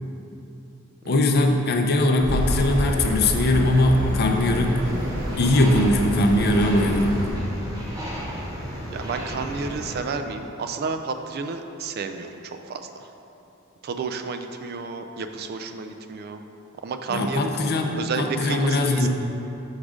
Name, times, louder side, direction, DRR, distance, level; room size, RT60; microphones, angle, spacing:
voice 1, 1.1-4.8 5.4-7.2 17.1-19.1, left 1 dB, 50° left, 3 dB, 0.5 m, -21 dB
Accelerating revving vroom, 2.2-7.3, equal, 85° right, 1.4 m, -28 dB
sound 1, 4.8-10.0, equal, 15° right, 1.0 m, -34 dB
voice 2, 8.9-13.1 13.8-16.4 16.8-17.6 18.0-19.1, right 4 dB, 50° right, 7 dB, 0.3 m, -31 dB
6.4 x 3.6 x 4.9 m, 2.9 s
head